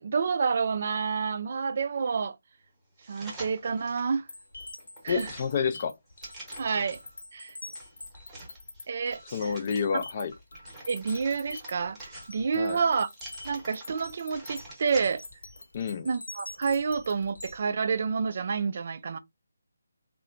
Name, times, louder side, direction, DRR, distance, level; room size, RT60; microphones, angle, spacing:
voice 1, 0.0-2.4 3.1-4.3 5.0-5.3 6.6-7.0 7.3-7.6 8.9-9.5 9.9-10.0 10.9-13.1 13.4-15.2 16.0-19.2, right 5 dB, 45° right, 0.3 m, -29 dB
sound 1, 3.0-4.1 4.6-7.1 7.7-9.8 10.3-12.6 13.1-15.4 15.8-15.9, right 2 dB, 10° right, 0.9 m, -47 dB
sound 2, 4.3-17.6, left 2 dB, 70° left, 1.0 m, -45 dB
voice 2, 5.1-5.9 9.3-10.3 12.6-12.8 15.7-16.1, left 6 dB, 35° left, 0.4 m, -29 dB
2.8 x 2.1 x 2.4 m
figure-of-eight pair, 165°, 0 cm